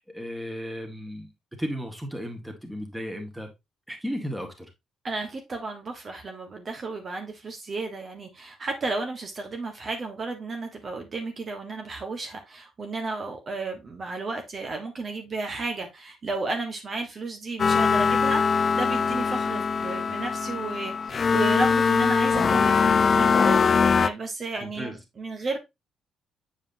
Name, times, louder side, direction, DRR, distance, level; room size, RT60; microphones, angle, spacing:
voice 1, 0.1-1.3 1.6-3.5 3.9-4.7 24.6-25.0, equal, 5° right, 1.9 m, -34 dB
voice 2, 5.0-25.6, right 3 dB, 40° right, 1.4 m, -33 dB
sound 1, 17.6-24.1, left 5 dB, 40° left, 0.4 m, -22 dB
7.5 x 4.8 x 2.7 m
cardioid pair, 90°, 0 cm